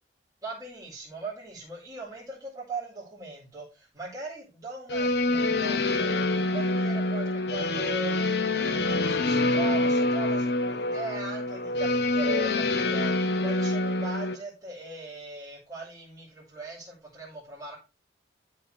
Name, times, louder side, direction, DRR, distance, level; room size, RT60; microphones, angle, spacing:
voice 1, 0.4-17.8, right 2 dB, 20° right, -6 dB, 4.4 m, -39 dB
sound 1, 4.9-14.4, left 2 dB, 65° left, 1.0 m, -26 dB
13.0 x 4.6 x 3.3 m, 0.28 s
head